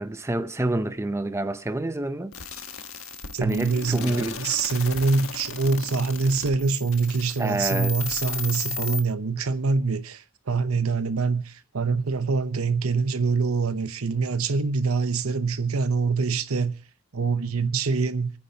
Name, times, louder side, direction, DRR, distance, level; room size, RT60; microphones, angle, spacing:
voice 1, 0.0-2.3 3.4-4.4 7.4-8.0, right 1 dB, 15° right, 0.6 m, -27 dB
sound 1, 2.3-9.0, left 4 dB, 80° left, 1.3 m, -35 dB
voice 2, 3.3-16.7 17.1-18.3, right 4 dB, 85° right, 0.9 m, -25 dB
27.5 x 9.8 x 2.9 m
head